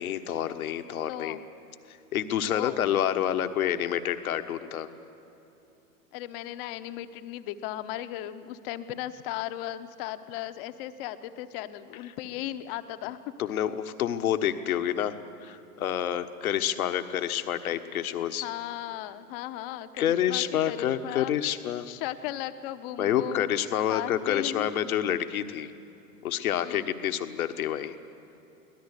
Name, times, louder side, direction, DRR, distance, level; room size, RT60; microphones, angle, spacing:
voice 1, 0.0-1.4 1.9-4.9 13.4-15.2 15.4-18.5 20.0-21.9 23.0-25.7 26.2-27.9, left 10 dB, 60° left, 10 dB, 1.3 m, -28 dB
voice 2, 1.1-1.4 2.5-2.8 6.1-13.2 18.4-21.3 21.8-23.5 23.9-24.7 26.6-26.9, left 13 dB, 35° left, 11 dB, 1.0 m, -36 dB
24.5 x 18.0 x 8.3 m, 2.9 s
figure-of-eight pair, 105°, 48 cm